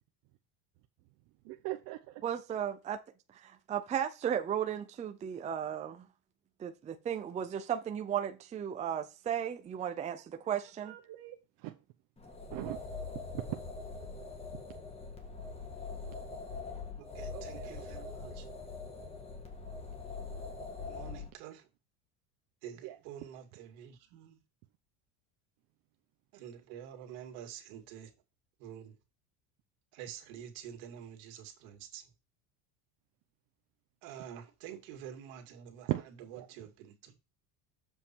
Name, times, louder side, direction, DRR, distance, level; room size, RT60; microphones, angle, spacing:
voice 1, 1.5-2.0 10.8-11.8 12.5-12.8 13.3-13.4 17.3-18.2 22.8-23.0 35.9-36.5, right 17 dB, 55° right, 0.9 m, -39 dB
voice 2, 2.2-3.0 3.4-6.1 6.6-10.9, right 9 dB, 15° right, 0.5 m, -35 dB
sound 1, 12.2-21.3, left 4 dB, 15° left, 1.6 m, -43 dB
voice 3, 17.0-18.5 20.9-21.7 22.6-24.4 26.3-28.1 28.6-28.9 29.9-32.0 34.0-35.9 36.5-37.1, right 9 dB, 75° right, 2.3 m, -48 dB
7.3 x 5.4 x 4.5 m
cardioid pair, 155°, 42 cm